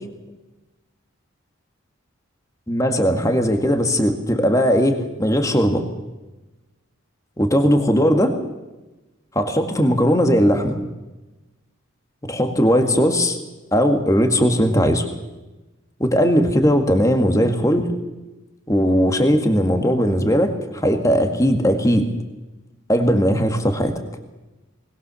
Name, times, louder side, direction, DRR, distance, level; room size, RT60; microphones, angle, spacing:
voice 1, 2.7-5.8 7.4-8.4 9.3-10.8 12.2-13.4 13.7-15.1 16.0-17.9 18.7-22.1 22.9-24.0, equal, 15° left, 6 dB, 1.9 m, -18 dB
20.5 x 20.5 x 7.0 m, 1.1 s
head